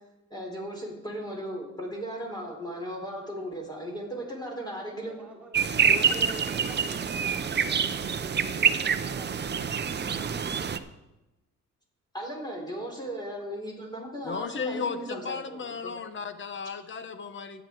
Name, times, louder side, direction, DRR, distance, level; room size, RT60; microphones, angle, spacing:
voice 1, 0.3-5.2 5.9-7.0 12.1-16.0, equal, 15° left, 0 dB, 4.0 m, -37 dB
voice 2, 4.9-10.7, right 2 dB, 5° right, -4 dB, 4.0 m, -47 dB
sound 1, 5.5-10.8, right 7 dB, 35° right, 0.7 m, -26 dB
voice 3, 14.2-17.6, left 5 dB, 40° left, 11 dB, 1.1 m, -35 dB
13.5 x 9.1 x 4.6 m, 0.99 s
cardioid pair, 90°, 30 cm